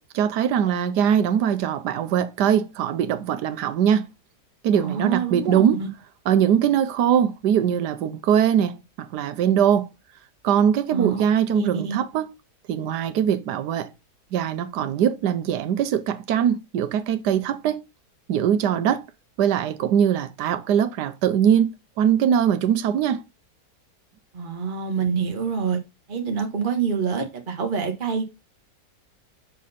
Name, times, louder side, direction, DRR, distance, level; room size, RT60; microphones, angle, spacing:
voice 1, 0.0-4.1 4.6-5.8 6.2-9.9 10.4-12.3 12.7-13.9 14.3-17.8 18.3-19.1 19.4-23.2, right 9 dB, 90° right, 1.3 m, -21 dB
voice 2, 4.7-5.9 10.9-11.2 11.5-12.0 24.3-25.8 26.1-28.2, right 6 dB, 35° right, 1.3 m, -26 dB
7.5 x 5.6 x 4.1 m
omnidirectional pair, 1.8 m